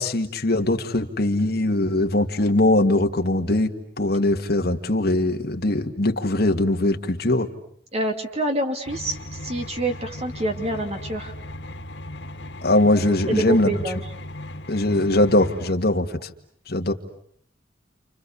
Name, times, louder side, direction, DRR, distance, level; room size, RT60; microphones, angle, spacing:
voice 1, 0.0-7.5 12.6-13.7 14.7-16.3 16.7-16.9, left 1 dB, 55° left, 4 dB, 1.9 m, -21 dB
voice 2, 7.9-11.3 13.3-14.0, right 1 dB, 35° right, 5 dB, 2.9 m, -27 dB
sound 1, 8.9-15.7, left 1 dB, 90° left, 2.0 m, -37 dB
29.5 x 29.0 x 6.9 m, 0.64 s
head